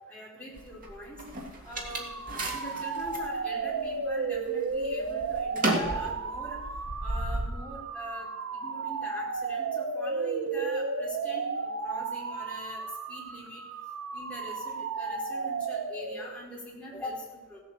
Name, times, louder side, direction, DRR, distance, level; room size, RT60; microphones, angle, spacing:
voice 1, 0.1-1.2 1.6-2.1 2.4-6.6 7.0-13.6 14.1-17.6, equal, 5° left, -6 dB, 4.5 m, -42 dB
sound 1, 0.6-3.3 3.8-4.4 4.7-7.5, right 2 dB, 40° right, 2.1 m, -33 dB
sound 2, 1.8-16.5, right 4 dB, 85° right, 0.9 m, -34 dB
16.5 x 8.2 x 7.0 m, 1.2 s
head